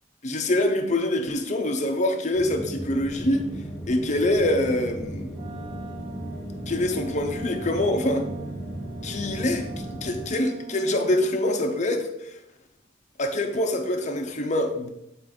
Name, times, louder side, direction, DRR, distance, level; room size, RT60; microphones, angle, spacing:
voice 1, 0.2-3.5 3.9-5.3 6.7-8.3 9.0-12.3 13.2-14.9, left 1 dB, 40° left, 4 dB, 0.8 m, -25 dB
sound 1, 2.3-10.3, equal, 10° left, 1.3 m, -36 dB
Wind instrument woodwind instrument, 5.3-11.3, right 3 dB, 30° right, 0.5 m, -42 dB
8.6 x 4.2 x 3.8 m, 0.82 s
head